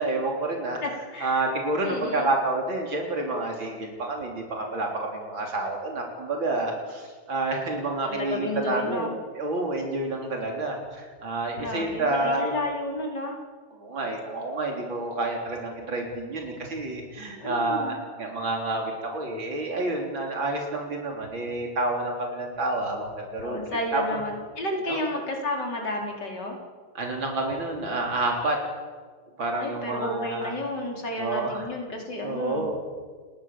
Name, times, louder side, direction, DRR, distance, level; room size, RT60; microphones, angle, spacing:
voice 1, 0.0-0.8 1.2-12.5 13.7-23.6 23.9-24.0 24.9-25.0 26.9-28.6 29.4-30.5 31.2-31.7 32.2-32.8, right 2 dB, 85° right, 1 dB, 4.5 m, -29 dB
voice 2, 0.8-1.5 1.8-2.3 8.1-9.1 11.6-13.4 17.4-18.0 23.4-26.6 29.6-32.7, left 1 dB, 60° left, 0 dB, 5.4 m, -31 dB
29.5 x 20.5 x 7.5 m, 1.6 s
omnidirectional pair, 2.1 m